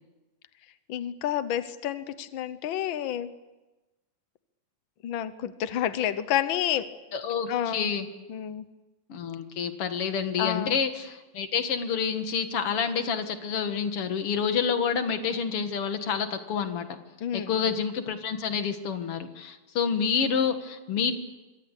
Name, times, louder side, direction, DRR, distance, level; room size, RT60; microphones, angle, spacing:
voice 1, 0.9-3.3 5.0-6.9 7.5-7.9 8.3-8.7 10.4-10.8 17.2-17.8, left 10 dB, 90° left, 13 dB, 1.1 m, -29 dB
voice 2, 7.1-8.1 9.1-17.0 17.3-21.1, left 6 dB, 50° left, 8 dB, 2.3 m, -28 dB
26.0 x 23.5 x 8.4 m, 1.1 s
omnidirectional pair, 3.7 m